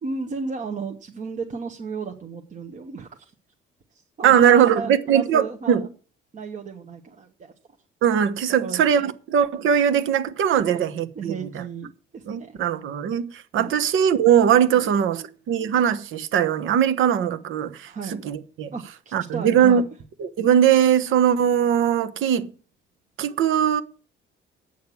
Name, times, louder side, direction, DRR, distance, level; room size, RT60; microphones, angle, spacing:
voice 1, 0.0-3.3 3.9-5.9 6.3-7.5 8.6-9.1 10.5-10.9 11.1-12.5 13.5-13.8 14.7-15.4 17.9-18.2 18.7-19.8, right 4 dB, 40° right, 1.0 m, -34 dB
voice 2, 4.2-5.9 8.0-11.6 12.3-18.7 19.1-19.8 20.2-22.5 23.2-23.8, right 9 dB, 70° right, 1.0 m, -20 dB
8.3 x 6.5 x 8.3 m
cardioid pair, 125°, 21 cm